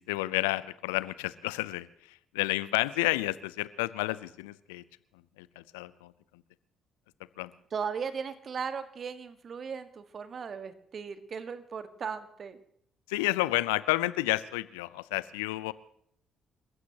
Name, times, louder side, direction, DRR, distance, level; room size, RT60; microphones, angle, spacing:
voice 1, 0.0-1.9 2.3-4.8 5.4-6.1 7.4-7.5 13.1-15.7, left 19 dB, 75° left, 18 dB, 0.6 m, -30 dB
voice 2, 7.7-12.6, right 6 dB, 45° right, 11 dB, 1.6 m, -37 dB
29.5 x 15.5 x 2.9 m, 0.69 s
figure-of-eight pair, 45°, 0 cm